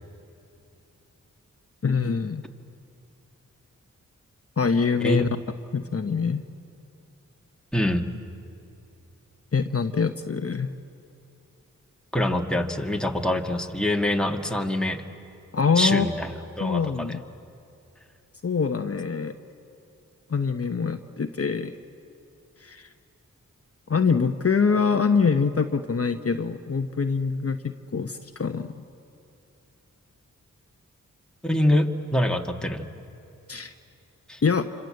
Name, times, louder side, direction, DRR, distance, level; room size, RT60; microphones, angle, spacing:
voice 1, 1.8-2.4 4.6-5.3 5.7-6.5 9.5-10.7 15.5-16.1 16.6-17.2 18.4-19.3 20.3-21.8 22.6-22.9 23.9-28.7 33.5-33.7 34.4-34.7, left 5 dB, 45° left, 7 dB, 1.0 m, -24 dB
voice 2, 7.7-8.1 12.1-15.0 15.8-17.2 31.4-32.9 34.3-34.4, left 1 dB, ahead, 3 dB, 2.1 m, -25 dB
28.0 x 26.0 x 7.8 m, 2.7 s
cardioid pair, 40°, 33 cm